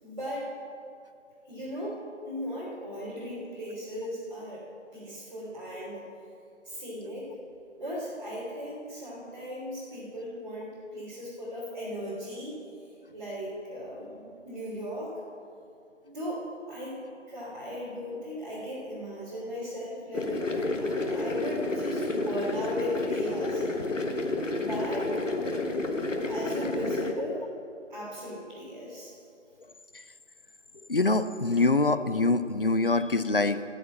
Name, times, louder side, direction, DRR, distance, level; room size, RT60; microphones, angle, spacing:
voice 1, 0.0-0.5 1.5-4.6 4.9-6.0 6.6-7.3 7.8-12.5 13.1-15.1 16.0-17.0 17.3-23.9 24.5-25.1 26.3-27.5 27.9-29.1, equal, 35° right, -9 dB, 3.2 m, -37 dB
sound 1, 20.1-27.1, left 2 dB, 85° left, 1.6 m, -30 dB
voice 2, 30.9-33.6, left 3 dB, 45° left, 12 dB, 0.6 m, -24 dB
13.0 x 7.3 x 8.6 m, 2.5 s
figure-of-eight pair, 175°, 37 cm